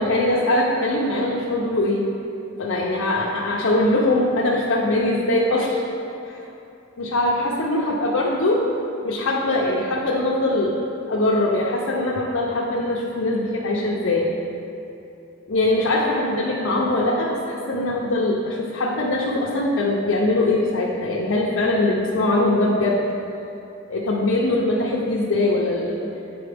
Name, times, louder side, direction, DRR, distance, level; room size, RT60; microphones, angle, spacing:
voice 1, 0.0-2.1 2.6-5.8 6.2-6.4 7.0-8.7 9.0-14.3 15.5-23.0 23.9-26.1, left 2 dB, 75° left, -3 dB, 0.6 m, -22 dB
7.7 x 4.3 x 3.4 m, 2.8 s
head